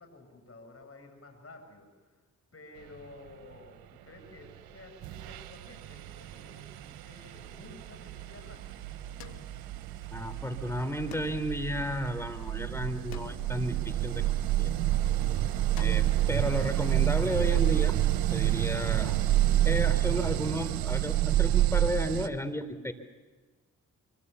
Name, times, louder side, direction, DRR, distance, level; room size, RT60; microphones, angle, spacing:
voice 1, 0.0-2.1 2.5-8.7, left 3 dB, 40° left, 4 dB, 8.0 m, -52 dB
sound 1, 4.5-4.7 5.0-22.3, right 13 dB, 85° right, 1.3 m, -29 dB
sound 2, 9.2-10.4 11.1-12.5 13.1-14.5 15.8-16.3, left 7 dB, 80° left, 1.9 m, -49 dB
voice 2, 10.1-14.7 15.8-18.0 18.3-19.1 19.6-22.9, equal, 5° left, 10 dB, 4.1 m, -33 dB
25.0 x 24.5 x 7.2 m, 1.3 s
supercardioid pair, 50°, 35 cm